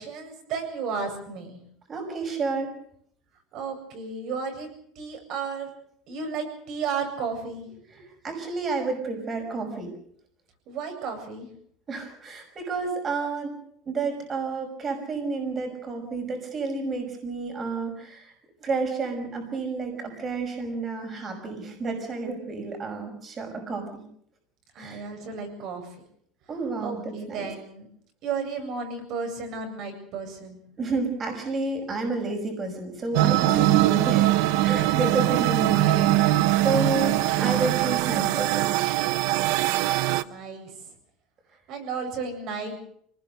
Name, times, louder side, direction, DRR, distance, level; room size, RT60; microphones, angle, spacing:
voice 1, 0.0-1.6 3.5-4.7 5.0-5.7 6.1-8.1 10.7-11.5 24.7-25.9 26.8-27.9 28.2-30.6 33.5-33.7 39.9-40.7 41.7-42.8, right 5 dB, 55° right, 5 dB, 7.9 m, -33 dB
voice 2, 1.9-2.7 8.2-9.9 11.9-13.5 13.9-18.3 18.6-24.0 24.8-25.0 26.5-27.5 30.8-34.4 34.6-38.7, right 3 dB, 25° right, 4 dB, 5.7 m, -30 dB
sound 1, 33.1-40.2, right 15 dB, 75° right, 0.9 m, -22 dB
26.0 x 19.5 x 6.6 m, 0.66 s
cardioid pair, 150°, 0 cm